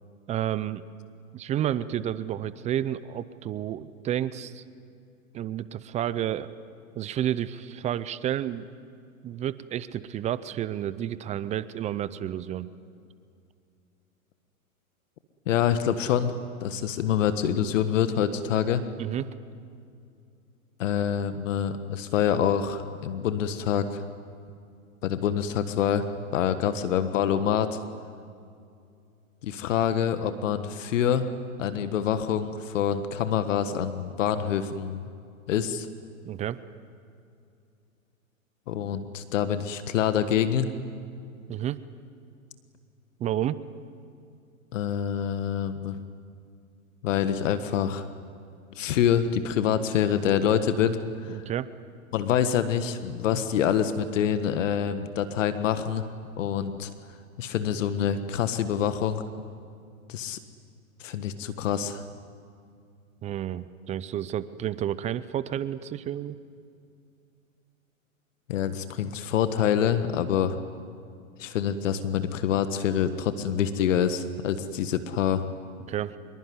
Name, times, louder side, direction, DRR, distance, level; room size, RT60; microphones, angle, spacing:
voice 1, 0.3-0.8 1.3-4.6 5.3-6.5 7.0-8.7 9.2-12.7 19.0-19.3 36.2-36.6 41.5-41.8 43.2-43.6 51.3-51.7 63.2-66.4 75.9-76.1, right 11 dB, 15° right, 16 dB, 0.5 m, -30 dB
voice 2, 15.5-16.3 16.6-18.8 20.8-24.0 25.0-26.1 26.3-27.8 29.4-31.3 31.6-35.0 35.5-35.9 38.7-40.7 44.7-46.0 47.0-48.0 48.7-51.4 52.1-56.0 56.4-56.9 57.4-59.2 60.1-60.4 61.0-62.0 68.5-70.6 71.4-75.4, left 9 dB, 60° left, 10 dB, 1.6 m, -26 dB
25.5 x 23.0 x 9.6 m, 2.4 s
hypercardioid pair, 120°, 42 cm